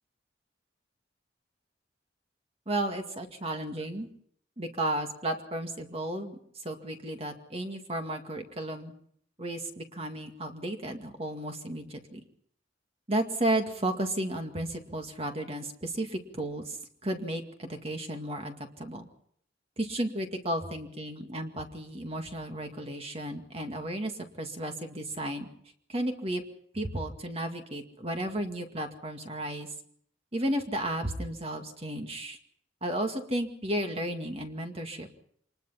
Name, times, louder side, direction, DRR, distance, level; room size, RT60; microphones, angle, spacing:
voice 1, 2.7-4.1 4.6-6.4 6.6-8.9 9.4-12.2 13.1-16.8 17.0-19.1 19.8-25.5 25.9-26.4 26.7-29.7 30.3-32.4 32.8-35.1, right 1 dB, 35° right, 5 dB, 2.1 m, -33 dB
26.5 x 20.5 x 5.7 m, 0.66 s
head